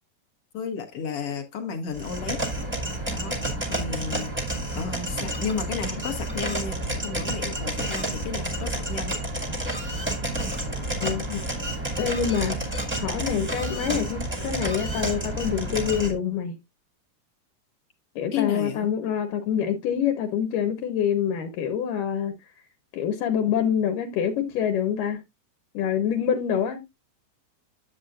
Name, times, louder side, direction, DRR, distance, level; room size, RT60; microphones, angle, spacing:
voice 1, 0.5-2.4 3.1-3.4 3.7-4.3 4.7-9.1 18.3-18.9, left 6 dB, 60° left, 1.7 m, -32 dB
sound 1, 1.9-16.1, right 1 dB, 10° right, 0.5 m, -30 dB
voice 2, 11.0-11.4 12.0-12.6 13.0-16.6 18.2-22.3 22.9-25.2 25.7-26.8, left 8 dB, 80° left, 2.5 m, -26 dB
10.0 x 7.3 x 2.5 m
omnidirectional pair, 3.9 m